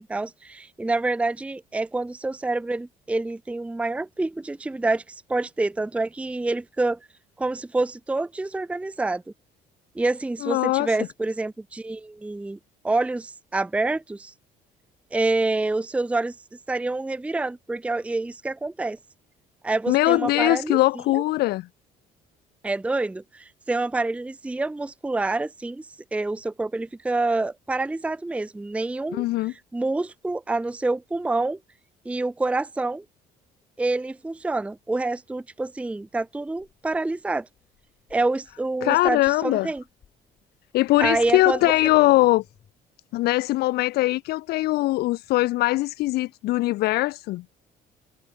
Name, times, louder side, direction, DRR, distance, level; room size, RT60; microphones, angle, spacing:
voice 1, 0.0-7.0 7.4-9.2 10.0-12.6 12.8-14.3 15.1-16.3 16.7-19.0 19.6-20.8 21.1-21.2 22.6-25.9 26.1-31.6 32.1-33.0 33.8-37.5 38.1-39.8 41.0-41.7, right 2 dB, 5° right, 0.6 m, -27 dB
voice 2, 10.4-10.9 19.9-21.7 29.1-29.5 38.8-39.7 40.7-42.4 43.1-47.4, left 18 dB, 70° left, 0.4 m, -21 dB
sound 1, 35.6-42.7, left 8 dB, 45° left, 6.0 m, -56 dB
cardioid pair, 110°, 17 cm